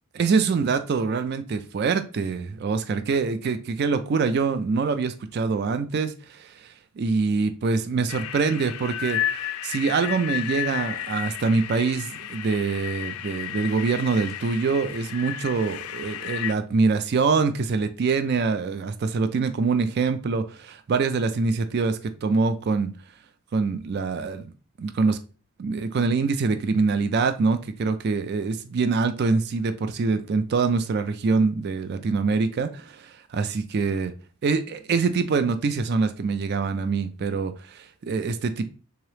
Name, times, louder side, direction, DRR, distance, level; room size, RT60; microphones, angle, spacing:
voice 1, 0.2-6.7 7.0-22.9 23.5-24.5 24.8-25.2 25.6-34.1 34.4-38.7, right 4 dB, 50° right, 10 dB, 0.3 m, -24 dB
sound 1, 8.1-16.5, left 12 dB, 85° left, 0.4 m, -32 dB
3.6 x 2.9 x 3.2 m, 0.36 s
head